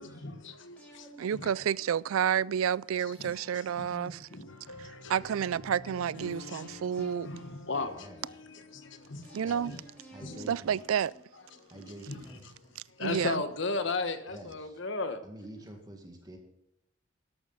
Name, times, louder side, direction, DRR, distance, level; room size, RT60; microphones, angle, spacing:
voice 1, 0.0-1.5 3.0-3.9 4.3-5.1 6.1-6.8 7.2-9.4 9.6-9.8 10.2-10.5 11.5-12.2 12.9-15.2, left 3 dB, 60° left, 1.3 m, -37 dB
sound 1, 0.8-2.3 3.1-5.2 6.2-8.4 9.2-11.6 12.2-13.9 14.2-14.3, equal, 5° left, 5.0 m, -53 dB
voice 2, 1.2-4.3 4.8-7.3 9.3-9.7 10.5-11.1 13.0-13.4, right 8 dB, 85° right, 0.4 m, -30 dB
sound 2, 4.5-10.1, left 3 dB, 85° left, 1.0 m, -49 dB
voice 3, 5.1-5.8 7.9-8.4 9.4-9.8 10.1-10.8 11.7-12.3 14.3-14.8 15.2-16.4, right 1 dB, 20° right, 1.8 m, -48 dB
13.0 x 11.5 x 4.1 m
head